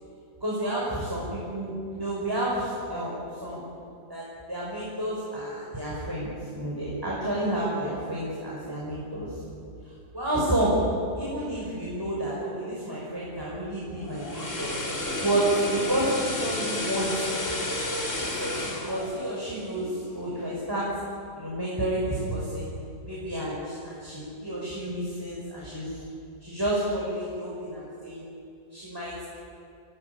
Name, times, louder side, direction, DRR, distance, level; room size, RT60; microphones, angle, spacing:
voice 1, 0.4-3.6 4.1-9.4 10.1-10.8 11.2-14.7 15.2-17.5 18.2-20.9 21.3-22.7 23.0-26.0 26.4-28.3 28.7-29.2, right 1 dB, 15° right, -6 dB, 5.9 m, -30 dB
sound 1, 13.9-20.1 20.5-20.7, left 2 dB, 45° left, 3.7 m, -32 dB
27.5 x 18.5 x 9.9 m, 2.5 s
omnidirectional pair, 1.8 m